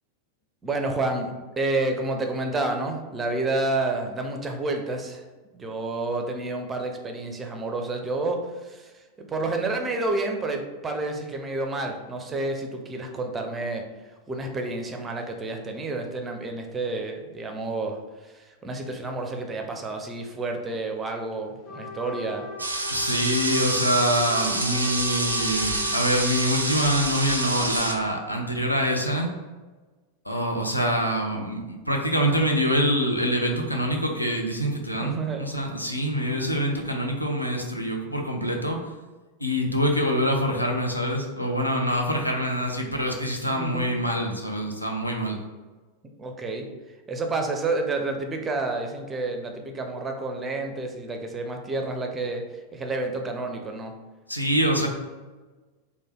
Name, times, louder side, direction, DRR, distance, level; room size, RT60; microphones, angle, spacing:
voice 1, 0.6-5.2 5.5-13.8 14.3-22.5 35.0-35.4 43.5-43.9 46.2-46.7 47.1-52.4 52.7-53.9, right 2 dB, 20° right, 3 dB, 0.5 m, -29 dB
Trumpet, 21.7-27.9, equal, 45° left, 1.3 m, -39 dB
sound 1, 22.6-27.9, right 2 dB, 80° right, 0.4 m, -27 dB
voice 2, 22.9-29.3 30.2-38.8 39.4-45.4 54.3-54.9, equal, 85° left, 2 dB, 0.5 m, -25 dB
3.2 x 2.2 x 3.6 m, 1.3 s
figure-of-eight pair, 90°, 0 cm